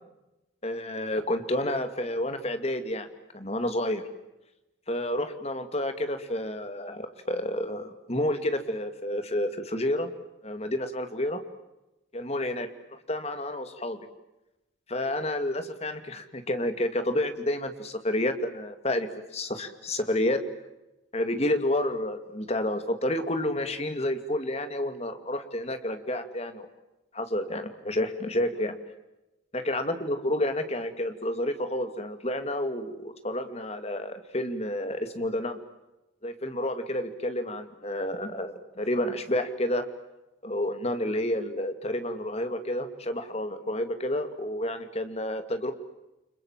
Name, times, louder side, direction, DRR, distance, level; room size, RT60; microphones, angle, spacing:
voice 1, 0.6-3.1 3.3-4.0 4.9-10.1 10.4-11.4 12.1-12.7 13.1-14.0 14.9-20.4 21.1-26.7 27.1-28.7 29.5-35.6 36.2-39.9 40.4-45.7, left 1 dB, 35° left, 8 dB, 2.4 m, -30 dB
30.0 x 26.0 x 7.4 m, 0.97 s
head